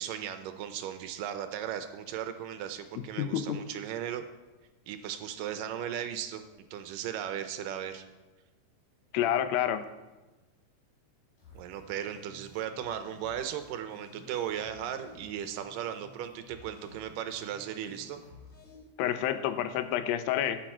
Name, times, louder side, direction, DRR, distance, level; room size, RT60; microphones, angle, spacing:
voice 1, 0.0-4.2 4.9-6.4 6.7-8.0 11.5-18.2, right 10 dB, 80° right, 9 dB, 2.2 m, -36 dB
voice 2, 3.2-3.6 9.1-9.8 19.0-20.6, left 10 dB, 85° left, 10 dB, 2.5 m, -28 dB
sound 1, 11.4-18.8, left 2 dB, 50° left, 5.0 m, -54 dB
16.5 x 7.1 x 4.4 m, 1.1 s
omnidirectional pair, 4.1 m